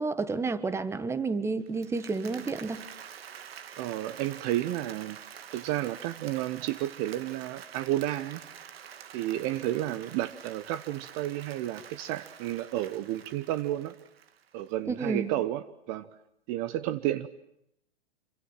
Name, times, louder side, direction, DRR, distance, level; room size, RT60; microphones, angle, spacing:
voice 1, 0.0-2.8 14.9-15.3, right 4 dB, 10° right, 14 dB, 1.4 m, -30 dB
Applause, 1.7-14.7, right 9 dB, 65° right, 1.9 m, -47 dB
voice 2, 3.8-5.2 5.5-8.4 9.1-13.9 14.5-16.1 16.5-17.3, right 14 dB, 35° right, 14 dB, 1.0 m, -31 dB
27.0 x 25.5 x 7.5 m, 0.75 s
hypercardioid pair, 120°, 32 cm